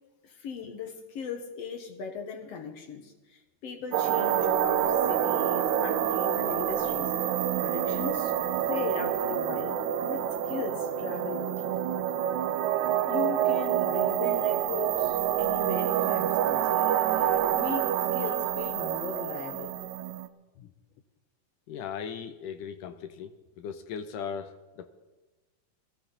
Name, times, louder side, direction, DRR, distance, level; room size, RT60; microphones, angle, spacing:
voice 1, 0.2-7.1 7.6-8.3 8.7-9.8 10.1-11.7 13.1-19.7, left 5 dB, 55° left, 5 dB, 2.1 m, -38 dB
sound 1, 3.9-20.3, right 10 dB, 75° right, 2.0 m, -27 dB
voice 2, 21.7-24.9, left 7 dB, 80° left, 8 dB, 2.3 m, -38 dB
21.0 x 15.0 x 4.0 m, 1.1 s
omnidirectional pair, 3.8 m